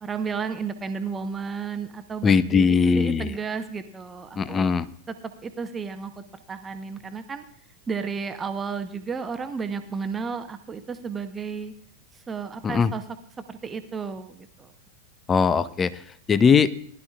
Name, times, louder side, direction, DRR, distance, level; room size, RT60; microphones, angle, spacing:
voice 1, 0.0-4.7 5.1-5.2 5.4-7.4 7.9-11.7 12.3-13.0 13.5-14.7, right 5 dB, 15° right, 8 dB, 0.9 m, -33 dB
voice 2, 2.2-3.3 4.4-4.9 12.6-12.9 15.3-15.9 16.3-16.7, left 6 dB, 20° left, 15 dB, 0.6 m, -20 dB
19.5 x 11.5 x 2.4 m, 0.63 s
figure-of-eight pair, 90°, 0 cm